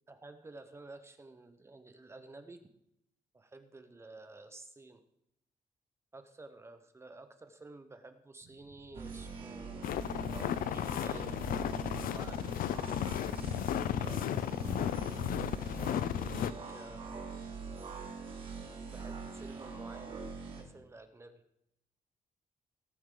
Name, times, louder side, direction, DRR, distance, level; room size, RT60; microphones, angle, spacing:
voice 1, 0.1-2.7 3.3-5.0 6.1-10.1 10.7-11.3 11.9-12.7 15.8-16.4 16.7-17.2 18.9-20.3 20.6-21.4, right 2 dB, 20° right, 8 dB, 0.8 m, -52 dB
sound 1, 8.4-13.6, right 2 dB, 70° right, 1.7 m, -58 dB
sound 2, 8.9-20.6, right 5 dB, 40° right, 2.6 m, -43 dB
sound 3, 9.8-16.5, left 11 dB, 90° left, 0.5 m, -34 dB
18.5 x 7.8 x 3.8 m, 0.78 s
wide cardioid pair, 175°, 14 cm